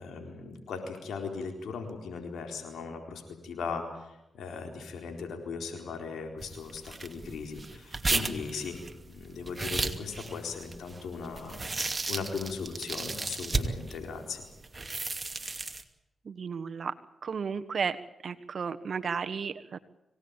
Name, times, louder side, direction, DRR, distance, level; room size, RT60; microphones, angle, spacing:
voice 1, 0.0-14.4, left 5 dB, 90° left, 4 dB, 4.2 m, -38 dB
Melon Stabs (Juicy), 6.4-14.0 14.6-15.8, right 3 dB, 30° right, 2.6 m, -34 dB
voice 2, 16.2-16.9 17.2-18.0 18.2-19.8, right 6 dB, 65° right, 10 dB, 1.4 m, -33 dB
25.5 x 18.0 x 8.9 m, 0.91 s
cardioid pair, 60°, 0 cm